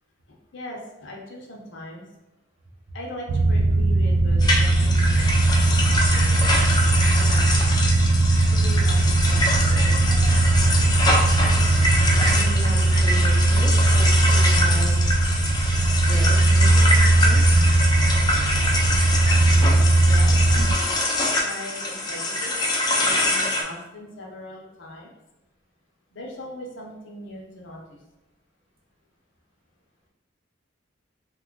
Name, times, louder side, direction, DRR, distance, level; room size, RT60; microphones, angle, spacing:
voice 1, 0.5-2.1 2.9-5.8 6.1-7.4 8.5-10.7 20.0-20.9 21.4-22.5 23.0-25.1 26.1-28.0, left 1 dB, 60° left, -1 dB, 0.6 m, -40 dB
sound 1, 3.3-20.8, right 2 dB, 65° right, 0.3 m, -19 dB
sound 2, 4.4-23.6, left 1 dB, 20° left, 0.4 m, -25 dB
voice 2, 12.2-15.0 16.0-17.7, right 1 dB, 30° right, -3 dB, 0.6 m, -36 dB
2.9 x 2.3 x 3.6 m, 0.99 s
head